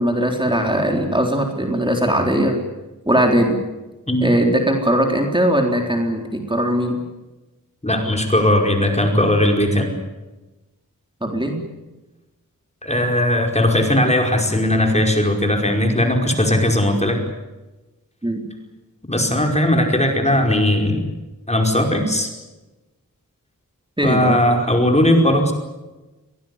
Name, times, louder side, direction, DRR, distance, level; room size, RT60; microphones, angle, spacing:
voice 1, 0.0-2.6 3.1-3.6 4.2-7.0 11.2-11.6 18.2-18.4 24.0-24.4, right 1 dB, 15° right, 2 dB, 4.0 m, -19 dB
voice 2, 7.8-9.9 12.8-17.2 19.1-21.0 21.5-22.3 24.0-25.5, left 1 dB, 20° left, 2 dB, 5.1 m, -18 dB
24.0 x 18.0 x 9.9 m, 1.1 s
wide cardioid pair, 60°, 33 cm